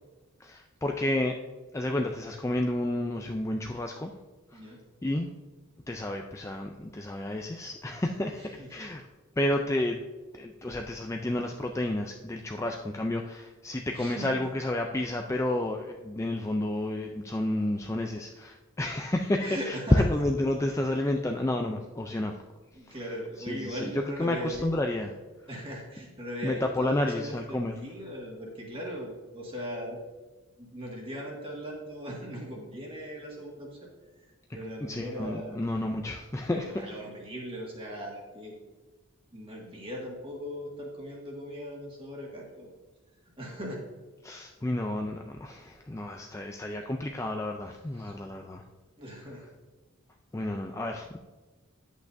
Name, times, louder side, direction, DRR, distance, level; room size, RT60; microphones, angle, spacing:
voice 1, 0.4-1.4 1.7-4.1 4.5-4.6 5.0-5.3 5.9-9.0 9.4-10.0 10.3-22.3 22.9-23.0 23.5-25.1 26.4-27.7 34.8-36.7 44.2-48.6 50.3-51.2, left 1 dB, 15° left, 3 dB, 0.3 m, -30 dB
voice 2, 8.4-8.8 13.9-14.5 19.4-20.0 22.7-24.7 25.5-30.0 30.6-33.9 34.2-34.3 34.5-35.6 36.5-38.6 39.3-42.7 43.4-43.8 47.7-48.2 49.0-49.4, equal, 25° right, -2 dB, 1.8 m, -39 dB
10.5 x 8.2 x 2.6 m, 1.3 s
head